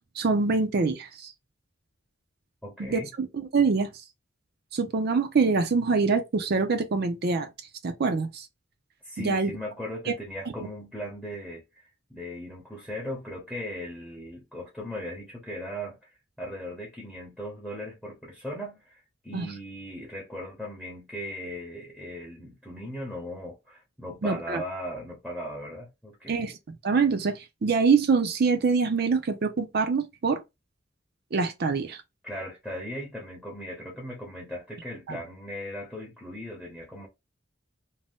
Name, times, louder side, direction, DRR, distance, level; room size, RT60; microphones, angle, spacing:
voice 1, 0.2-1.3 2.8-3.9 4.7-7.5 7.8-8.5 9.2-9.5 19.3-19.5 24.2-24.6 26.3-30.4 31.3-32.0 35.1-35.2, right 4 dB, 55° right, 0.5 m, -25 dB
voice 2, 2.6-3.1 9.0-16.0 16.4-26.5 32.2-37.1, equal, 5° left, 0.7 m, -38 dB
2.6 x 2.1 x 3.4 m
head